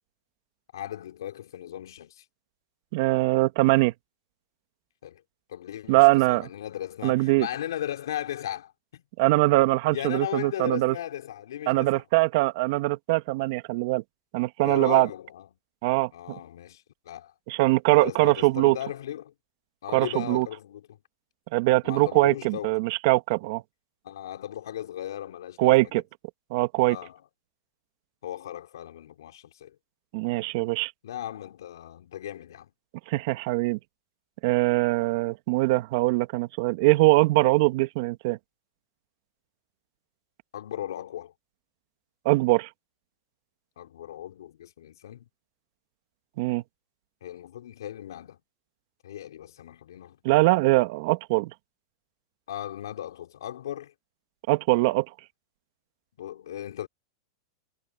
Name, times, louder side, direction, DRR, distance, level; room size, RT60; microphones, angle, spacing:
voice 1, 0.7-2.2 5.0-5.2 5.5-9.0 9.9-12.0 14.6-15.5 16.1-17.3 17.9-19.3 19.8-21.0 21.8-22.9 24.0-25.9 26.9-27.2 28.2-29.8 31.0-32.7 40.5-41.3 43.8-45.2 47.2-48.4 49.0-50.2 52.5-53.9 56.2-56.9, left 11 dB, 80° left, 4.5 m, -37 dB
voice 2, 2.9-3.9 5.9-6.5 7.0-7.5 9.2-11.0 11.7-14.0 14.3-15.1 15.8-16.4 17.5-18.8 19.9-20.5 21.5-23.6 25.6-26.0 26.5-27.0 30.1-30.9 33.1-33.8 34.4-38.4 42.3-42.7 46.4-46.6 50.2-51.5 54.5-55.1, right 21 dB, 55° right, 2.0 m, -22 dB
hypercardioid pair, 135°, 2 cm